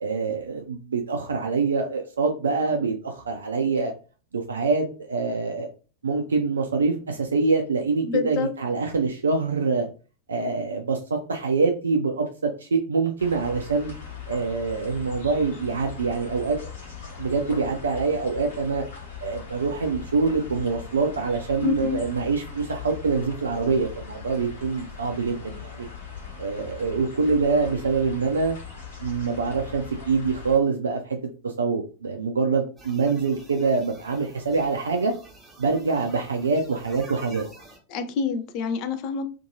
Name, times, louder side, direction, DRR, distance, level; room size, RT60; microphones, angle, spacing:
voice 1, 0.0-3.9 4.3-5.7 6.0-9.9 10.3-13.9 14.3-16.6 17.2-18.8 19.2-25.9 26.4-28.6 29.0-31.2 31.4-35.1 35.6-37.5, right 4 dB, 70° right, 3 dB, 0.3 m, -25 dB
voice 2, 8.0-8.5 21.6-22.0 37.9-39.2, left 6 dB, 40° left, 9 dB, 0.4 m, -27 dB
sound 1, 13.2-30.6, left 6 dB, 60° left, 1.2 m, -40 dB
sound 2, 32.8-37.8, right 2 dB, 10° right, 0.9 m, -48 dB
2.6 x 2.5 x 2.7 m, 0.37 s
figure-of-eight pair, 90°, 0 cm